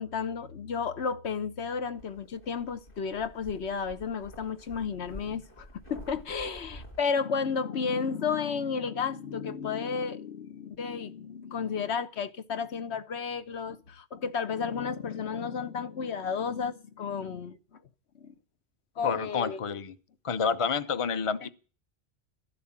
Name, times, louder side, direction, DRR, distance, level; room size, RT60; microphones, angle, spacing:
voice 1, 0.0-17.6 18.2-18.3 19.0-19.6 21.4-21.5, left 6 dB, 80° left, 1.3 m, -32 dB
sound 1, 2.0-7.0, left 1 dB, 55° left, 7.1 m, -49 dB
voice 2, 19.0-19.9 20.2-21.5, left 6 dB, 30° left, 0.8 m, -29 dB
13.0 x 11.5 x 8.7 m
omnidirectional pair, 1.1 m